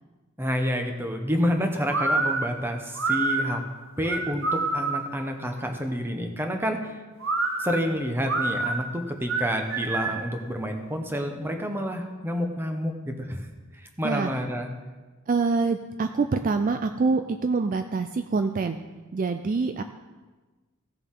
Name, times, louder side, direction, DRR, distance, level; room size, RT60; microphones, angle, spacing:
voice 1, 0.4-3.6 4.0-7.0 7.6-13.5 13.7-14.7, equal, 10° right, 4 dB, 1.0 m, -29 dB
sound 1, 1.9-5.2 7.2-10.3, right 3 dB, 65° right, 1.0 m, -27 dB
voice 2, 15.3-18.8 19.1-19.8, right 4 dB, 40° right, 8 dB, 0.4 m, -25 dB
16.0 x 6.9 x 3.8 m, 1.3 s
head